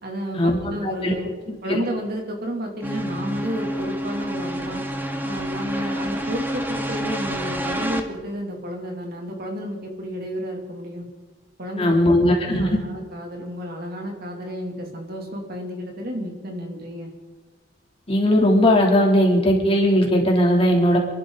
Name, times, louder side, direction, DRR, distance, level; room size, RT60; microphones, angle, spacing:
voice 1, 0.0-1.3 1.6-4.8 5.2-11.0 11.6-12.0 12.5-17.1, equal, 55° right, 1 dB, 3.0 m, -31 dB
voice 2, 0.8-1.1 1.5-1.8 11.8-12.8 18.1-21.0, left 1 dB, 30° left, -1 dB, 3.3 m, -18 dB
sound 1, 2.8-8.0, equal, 10° right, 1.3 m, -28 dB
27.5 x 12.0 x 4.1 m, 1.3 s
head